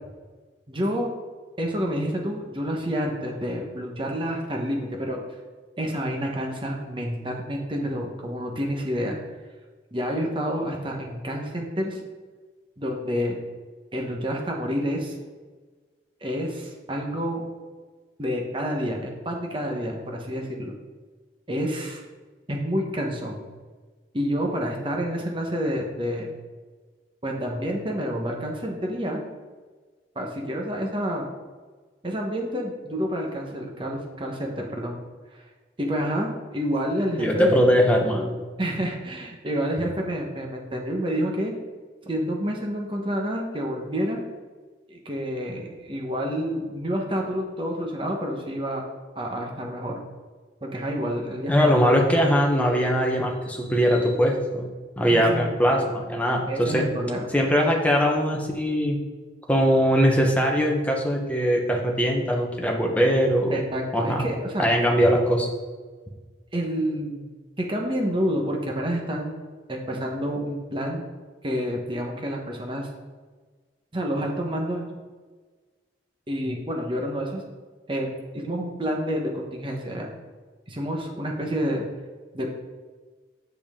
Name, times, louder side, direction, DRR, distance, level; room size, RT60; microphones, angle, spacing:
voice 1, 0.7-1.1 1.6-5.2 5.8-9.2 9.9-12.0 12.8-13.4 13.9-15.2 16.2-17.4 18.2-20.7 21.5-22.0 22.5-23.4 24.1-26.3 27.2-29.2 30.1-31.3 32.0-35.0 35.3-35.4 35.8-37.6 38.6-41.5 42.1-44.2 44.9-48.8 49.2-50.0 50.6-52.0 55.1-55.9 56.5-57.3 63.5-64.6 66.5-67.2 67.6-69.4 69.7-71.0 71.4-72.9 73.9-74.9 76.3-77.4 77.9-80.1 80.7-81.8 82.3-82.5, equal, 25° right, 1 dB, 1.1 m, -28 dB
voice 2, 37.2-38.3 51.5-54.7 55.0-56.9 57.3-59.0 59.5-63.6 63.9-64.2 64.6-65.5, equal, 10° left, 0 dB, 0.9 m, -21 dB
7.9 x 6.8 x 3.6 m, 1.4 s
head